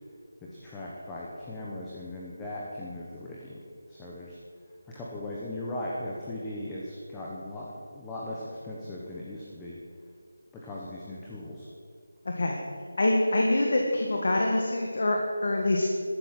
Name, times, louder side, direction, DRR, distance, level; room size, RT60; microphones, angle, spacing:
voice 1, 0.4-3.6 3.9-4.4 4.9-9.8 10.5-11.7, left 1 dB, 5° left, -5 dB, 1.0 m, -38 dB
voice 2, 12.3-12.6 13.0-15.9, left 2 dB, 40° left, 0 dB, 1.8 m, -25 dB
15.5 x 12.5 x 7.6 m, 2.3 s
figure-of-eight pair, 180°, 0 cm